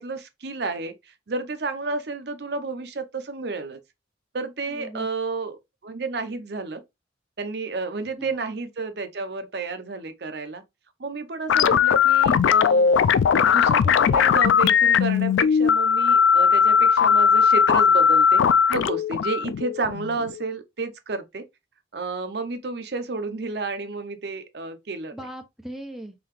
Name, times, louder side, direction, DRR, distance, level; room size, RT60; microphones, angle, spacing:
voice 1, 0.0-3.8 4.3-6.8 7.4-10.6 11.0-12.9 13.4-18.4 18.7-21.4 21.9-25.1, right 3 dB, 60° right, 0.6 m, -31 dB
voice 2, 4.7-5.1 8.2-8.5 11.5-11.7 25.1-26.1, right 1 dB, ahead, 0.6 m, -39 dB
sound 1, 11.5-20.4, left 7 dB, 85° left, 0.3 m, -19 dB
3.9 x 3.3 x 3.0 m
head